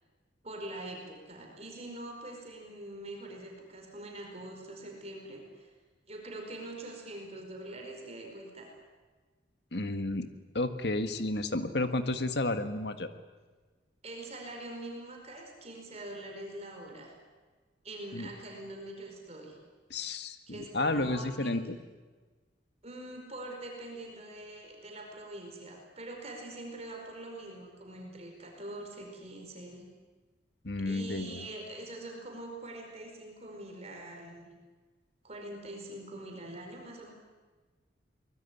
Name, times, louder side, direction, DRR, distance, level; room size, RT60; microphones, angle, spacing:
voice 1, 0.4-5.7 6.1-8.7 14.0-17.1 17.8-19.6 20.5-21.5 22.8-29.8 30.8-34.5 35.2-37.1, right 1 dB, 35° right, 1 dB, 4.8 m, -44 dB
voice 2, 9.7-10.3 10.5-13.1 18.1-18.3 19.9-21.8 30.6-31.5, left 2 dB, 60° left, 9 dB, 1.7 m, -32 dB
24.0 x 20.5 x 9.9 m, 1.4 s
head